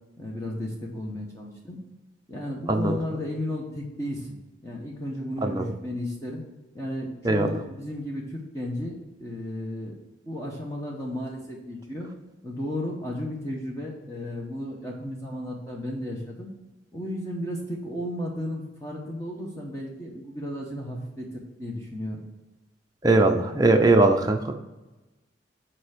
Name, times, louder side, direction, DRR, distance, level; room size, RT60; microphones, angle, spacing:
voice 1, 0.2-1.8 2.3-4.4 4.6-6.4 6.7-9.9 10.3-12.1 12.4-16.5 16.9-22.2, left 1 dB, 15° left, -2 dB, 0.9 m, -34 dB
voice 2, 23.0-24.5, right 2 dB, 20° right, 3 dB, 0.5 m, -20 dB
7.0 x 4.4 x 5.0 m, 1.1 s
head